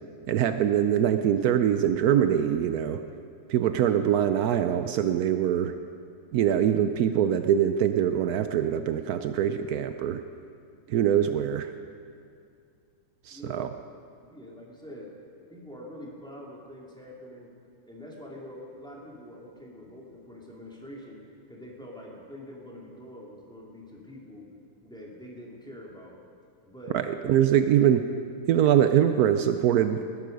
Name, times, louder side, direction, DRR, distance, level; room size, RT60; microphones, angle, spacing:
voice 1, 0.3-3.0 3.5-5.7 6.3-10.2 10.9-11.7 13.3-13.7 26.9-28.0 28.5-30.0, right 10 dB, 90° right, 9 dB, 0.8 m, -23 dB
voice 2, 13.3-13.7 14.2-15.1 15.5-17.5 17.9-21.2 21.5-24.5 24.8-26.2 26.6-27.0, left 1 dB, ahead, -3 dB, 2.3 m, -45 dB
20.0 x 11.0 x 5.2 m, 2.3 s
omnidirectional pair, 2.2 m